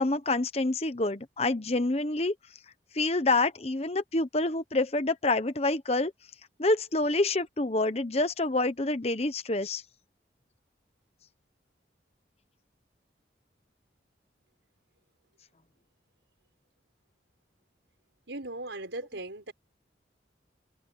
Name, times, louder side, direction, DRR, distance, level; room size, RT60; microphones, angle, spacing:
voice 1, 0.0-2.3 2.9-6.1 6.6-9.8, left 2 dB, 35° left, 1.1 m, -27 dB
voice 2, 18.3-19.5, right 2 dB, 85° right, 5.3 m, -38 dB
head